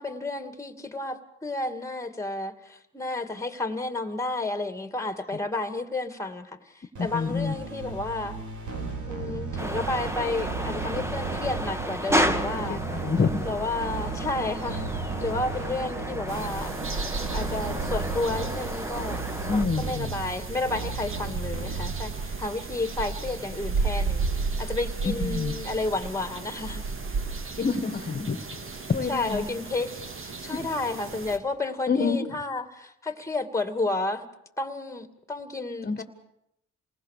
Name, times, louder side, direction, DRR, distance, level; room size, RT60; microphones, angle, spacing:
voice 1, 0.0-8.4 9.1-12.8 13.5-14.9 15.2-16.7 17.3-19.2 19.5-24.2 24.6-26.9 29.1-34.3 34.6-36.0, left 2 dB, 10° left, 8 dB, 2.4 m, -31 dB
sound 1, 6.9-22.4, right 4 dB, 75° right, 4.9 m, -35 dB
voice 2, 7.0-7.5 12.7-13.5 19.5-20.2 25.0-25.5 27.6-28.4 28.9-29.5 30.5-30.7 31.9-32.3 35.8-36.0, left 5 dB, 30° left, 9 dB, 1.8 m, -27 dB
sound 2, 9.6-19.7, equal, 10° right, 1.7 m, -32 dB
sound 3, 16.3-31.4, right 4 dB, 45° right, 2.5 m, -33 dB
28.0 x 19.5 x 6.7 m, 0.80 s
cardioid pair, 90°, 30 cm